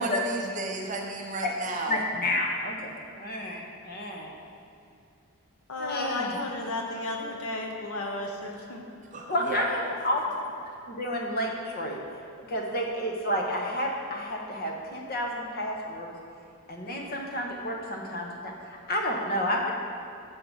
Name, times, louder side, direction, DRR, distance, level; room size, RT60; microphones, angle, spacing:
voice 1, 0.0-2.0 9.1-9.6, right 2 dB, 35° right, 1 dB, 0.6 m, -33 dB
voice 2, 1.9-4.3 5.8-6.4 9.3-10.2 10.9-12.0 12.5-16.1 16.7-19.7, left 1 dB, 45° left, 0 dB, 0.8 m, -30 dB
voice 3, 5.7-8.9, left 2 dB, 75° left, 1 dB, 0.8 m, -33 dB
7.0 x 3.7 x 5.4 m, 2.5 s
head